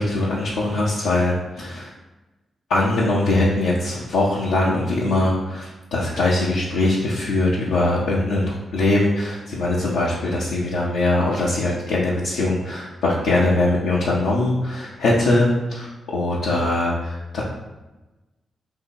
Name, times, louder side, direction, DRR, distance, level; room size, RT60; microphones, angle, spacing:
voice 1, 0.0-1.9 2.7-17.4, left 2 dB, 80° left, -7 dB, 0.5 m, -21 dB
2.8 x 2.7 x 4.2 m, 1.1 s
hypercardioid pair, 40°, 0 cm